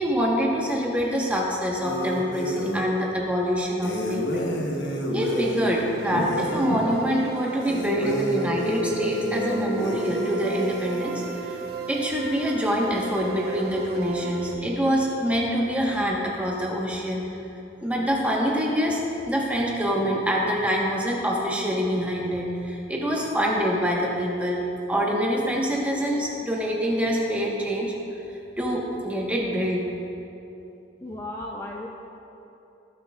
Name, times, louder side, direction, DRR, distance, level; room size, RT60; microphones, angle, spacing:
voice 1, 0.0-4.5 5.1-11.6 11.9-17.2 17.8-24.6 24.9-27.9 28.6-29.9, equal, 10° right, -3 dB, 1.2 m, -25 dB
sound 1, 1.8-2.8 3.8-6.8 7.6-11.3, equal, 75° left, 1.1 m, -30 dB
sound 2, 6.0-14.5, right 7 dB, 55° right, 0.5 m, -36 dB
voice 2, 31.0-31.9, left 1 dB, 15° left, -2 dB, 0.5 m, -35 dB
17.5 x 7.7 x 2.4 m, 2.9 s
head